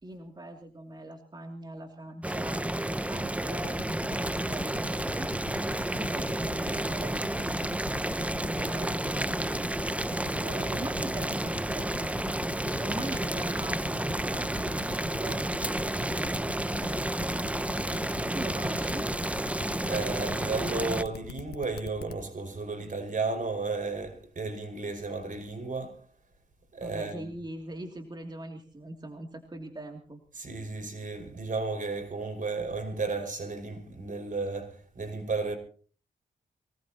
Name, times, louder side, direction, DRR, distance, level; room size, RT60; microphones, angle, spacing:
voice 1, 0.0-2.6 3.1-5.3 5.9-7.7 8.2-9.7 10.5-11.9 12.6-15.4 16.0-17.3 18.3-19.1 26.8-30.2, right 1 dB, 25° right, 2.8 m, -41 dB
Boiling, 2.2-21.0, right 1 dB, 10° right, 0.7 m, -31 dB
sound 1, 3.6-22.1, left 7 dB, 75° left, 1.5 m, -42 dB
voice 2, 19.9-26.0 26.7-27.3 30.3-35.6, right 3 dB, 50° right, 5.5 m, -33 dB
24.0 x 19.0 x 3.0 m
cardioid pair, 55°, 17 cm